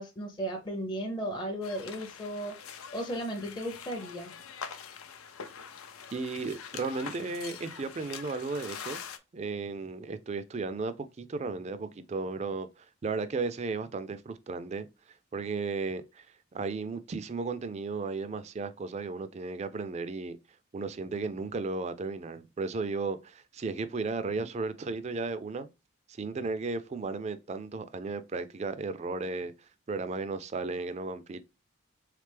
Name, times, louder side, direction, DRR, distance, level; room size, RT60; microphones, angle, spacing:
voice 1, 0.0-4.3, right 1 dB, 20° left, 0.5 m, -35 dB
sound 1, 1.6-9.2, left 7 dB, 85° left, 0.5 m, -44 dB
voice 2, 6.1-9.0 9.3-14.9 15.3-16.3 16.5-20.4 20.7-25.7 26.1-31.4, right 4 dB, 30° right, 0.3 m, -35 dB
3.5 x 3.2 x 3.3 m
head